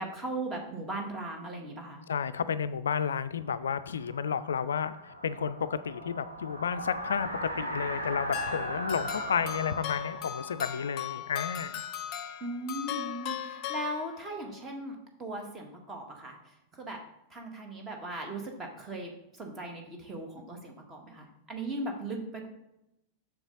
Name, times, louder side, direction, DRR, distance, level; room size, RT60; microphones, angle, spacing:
voice 1, 0.0-2.0 12.4-17.0 17.3-19.1 19.4-22.5, right 2 dB, 20° right, 2 dB, 1.7 m, -38 dB
voice 2, 2.1-11.8, left 7 dB, 65° left, 13 dB, 0.3 m, -32 dB
sound 1, 3.4-12.3, equal, 90° right, 1.4 m, -39 dB
sound 2, 8.3-14.5, left 11 dB, 40° left, 0.7 m, -38 dB
6.9 x 6.5 x 4.0 m, 0.87 s
figure-of-eight pair, 90°, 0 cm